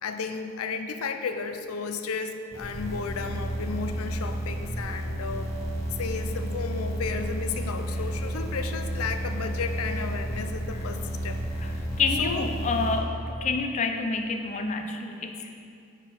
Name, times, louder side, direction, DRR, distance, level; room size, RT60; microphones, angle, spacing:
voice 1, 0.0-5.5 6.0-11.4 12.2-12.5, left 5 dB, 90° left, 8 dB, 0.5 m, -33 dB
sound 1, 2.5-12.9, right 1 dB, 15° left, 1.1 m, -32 dB
voice 2, 12.0-15.6, left 4 dB, 35° left, 5 dB, 0.4 m, -28 dB
9.8 x 4.4 x 4.2 m, 2.5 s
head